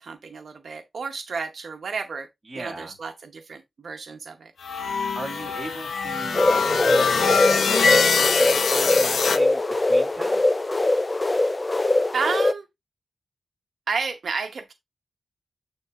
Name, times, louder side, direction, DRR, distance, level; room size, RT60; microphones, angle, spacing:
voice 1, 0.0-2.3 2.5-4.5 12.1-12.6 13.9-14.7, right 5 dB, 60° right, 0.8 m, -31 dB
voice 2, 2.5-2.9 5.2-6.8 7.0-10.5, right 2 dB, 15° right, 1.9 m, -38 dB
sound 1, 4.6-9.4, left 5 dB, 80° left, 0.8 m, -23 dB
sound 2, 6.3-12.5, left 2 dB, 20° left, 0.3 m, -22 dB
9.6 x 3.2 x 3.5 m
wide cardioid pair, 165°, 0 cm